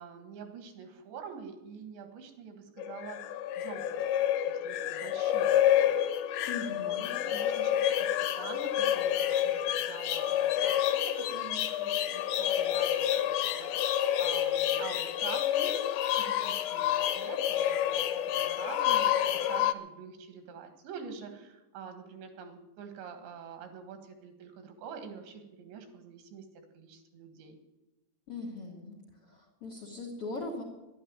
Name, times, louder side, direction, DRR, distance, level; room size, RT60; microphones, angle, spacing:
voice 1, 0.0-3.9 4.5-15.8 16.2-26.5 26.7-27.6, right 6 dB, 85° right, 7 dB, 4.0 m, -46 dB
sound 1, 2.8-19.7, left 11 dB, 85° left, 2.9 m, -29 dB
voice 2, 6.5-7.1 28.3-29.0 29.3-30.6, left 3 dB, 50° left, 2 dB, 1.8 m, -39 dB
11.0 x 11.0 x 9.4 m, 1.0 s
omnidirectional pair, 5.0 m